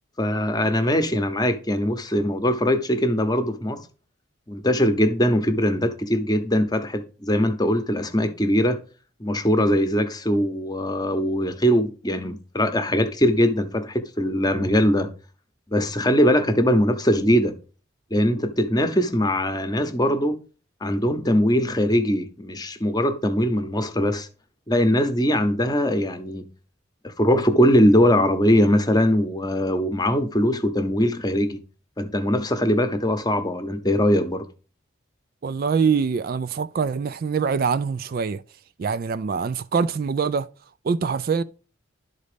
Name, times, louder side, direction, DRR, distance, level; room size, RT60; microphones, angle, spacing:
voice 1, 0.2-3.8 4.5-8.8 9.2-15.1 15.7-17.6 18.1-20.4 20.8-24.3 24.7-26.4 27.0-31.6 32.0-34.5, equal, 20° left, 0.8 m, -21 dB
voice 2, 35.4-38.4 38.8-40.5 40.8-41.4, right 5 dB, 45° right, 0.3 m, -24 dB
11.5 x 4.1 x 5.0 m
head